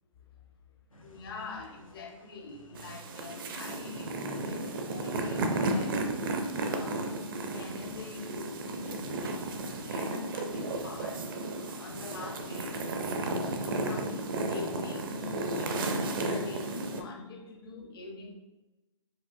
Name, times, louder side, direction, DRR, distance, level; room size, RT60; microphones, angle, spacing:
sound 1, 0.9-16.2, left 2 dB, 85° left, 0.6 m, -53 dB
voice 1, 1.0-6.0 6.7-18.4, left 4 dB, 45° left, 3 dB, 0.6 m, -45 dB
sound 2, 2.8-17.0, right 2 dB, 40° right, 0.4 m, -33 dB
4.7 x 2.4 x 2.5 m, 1.1 s
figure-of-eight pair, 130°, 17 cm